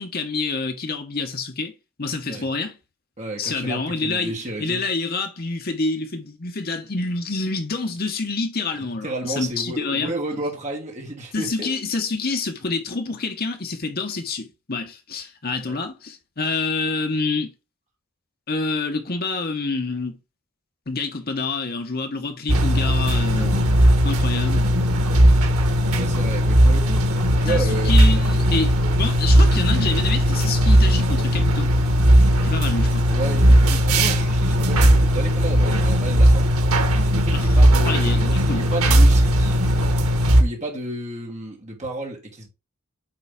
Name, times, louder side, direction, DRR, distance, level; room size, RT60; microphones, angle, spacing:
voice 1, 0.0-1.7 2.0-2.8 3.4-4.3 4.6-10.1 11.3-17.5 18.5-20.2 20.9-24.8 27.5-31.7 32.4-33.1 37.3-37.5 37.8-38.7, left 3 dB, 45° left, 1.2 m, -27 dB
voice 2, 3.2-4.8 9.0-11.7 15.7-15.8 25.0-25.2 25.9-27.0 27.4-27.9 33.1-36.5 37.1-39.6 40.4-42.5, right 1 dB, 35° right, 2.3 m, -31 dB
sound 1, 22.5-40.4, equal, 90° right, 1.2 m, -17 dB
8.8 x 3.8 x 3.7 m
head